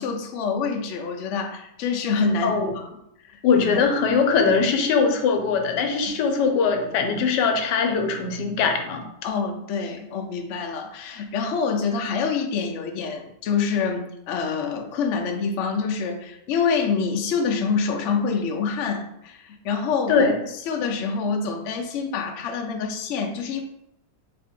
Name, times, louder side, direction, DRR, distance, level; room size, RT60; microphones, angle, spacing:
voice 1, 0.0-2.9 3.3-3.9 9.2-20.3 20.7-23.6, left 5 dB, 70° left, 2 dB, 0.7 m, -26 dB
voice 2, 2.4-2.7 3.4-9.1 20.1-20.4, left 5 dB, 85° left, 4 dB, 1.2 m, -21 dB
3.4 x 2.7 x 3.6 m, 0.80 s
omnidirectional pair, 1.8 m